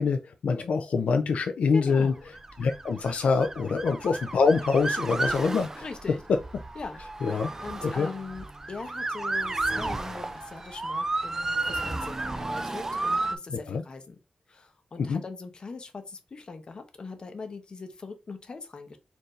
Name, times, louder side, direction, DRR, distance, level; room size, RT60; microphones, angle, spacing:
voice 1, 0.0-2.1 2.6-5.8 7.2-7.5 7.8-8.1 13.5-13.8 15.0-15.2, left 5 dB, 70° left, 0.4 m, -25 dB
voice 2, 1.7-2.3 3.6-3.8 5.8-6.2 6.7-7.3 7.6-14.2 14.5-19.0, left 4 dB, 40° left, 0.7 m, -41 dB
Motor vehicle (road) / Siren, 2.2-13.4, right 2 dB, 20° right, 0.3 m, -32 dB
4.4 x 2.6 x 3.1 m
wide cardioid pair, 145°, 2 cm